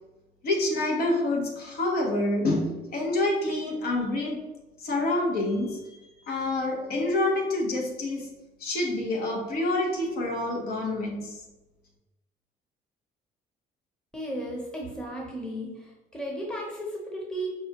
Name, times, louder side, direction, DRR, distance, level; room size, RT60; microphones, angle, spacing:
voice 1, 0.4-4.4 4.8-5.8 6.3-8.3 8.6-11.4, left 2 dB, 65° left, 0 dB, 1.1 m, -27 dB
voice 2, 14.1-17.5, right 1 dB, 5° left, -2 dB, 0.8 m, -35 dB
5.2 x 2.3 x 2.9 m, 1.1 s
cardioid pair, 110°, 17 cm